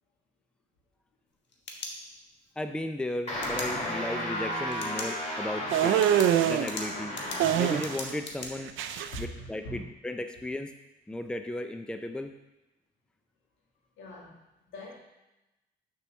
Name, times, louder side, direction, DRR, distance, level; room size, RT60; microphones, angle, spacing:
sound 1, 1.3-2.5 3.4-3.7 4.7-5.1 5.5-5.6 6.0-8.5, left 3 dB, 65° left, 1.3 m, -40 dB
voice 1, 2.6-6.0 6.4-7.1 7.5-8.7 9.2-10.7 11.1-12.3, left 1 dB, 5° left, 7 dB, 0.5 m, -35 dB
sound 2, 3.3-8.1, left 1 dB, 30° left, 3.1 m, -34 dB
sound 3, 5.7-6.7 7.4-8.1 8.4-9.2, right 10 dB, 85° right, 0.6 m, -25 dB
voice 2, 9.0-9.9 14.0-15.0, equal, 85° left, -2 dB, 2.1 m, -42 dB
6.7 x 4.7 x 6.3 m, 0.97 s
cardioid pair, 90°, 20 cm